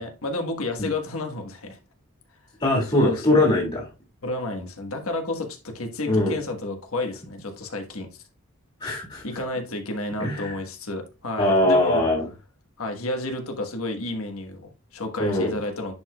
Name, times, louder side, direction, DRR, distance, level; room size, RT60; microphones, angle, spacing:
voice 1, 0.0-1.8 2.9-3.5 4.2-8.1 9.2-12.1 12.8-15.9, left 2 dB, 90° left, 5 dB, 1.3 m, -31 dB
voice 2, 2.6-3.9 6.1-6.3 8.8-9.2 10.2-10.6 11.4-12.3 15.2-15.5, left 1 dB, 30° left, -4 dB, 1.8 m, -21 dB
10.0 x 4.7 x 2.2 m, 0.30 s
head